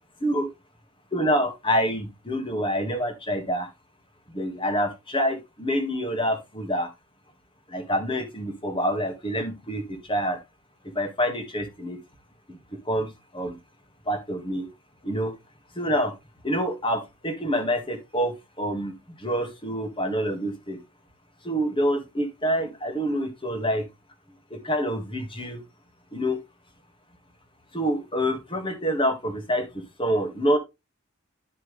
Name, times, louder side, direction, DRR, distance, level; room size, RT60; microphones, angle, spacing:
voice 1, 1.1-3.7 4.3-6.9 7.7-10.4 11.0-12.0 12.5-12.6 12.9-13.1 13.3-13.6 14.1-14.7 15.0-15.3 15.8-16.1 16.4-18.9 19.2-20.8 21.4-23.8 24.5-25.6 26.1-26.4 27.7-30.6, equal, 25° left, 5 dB, 1.8 m, -27 dB
11.5 x 6.0 x 3.3 m, 0.23 s
head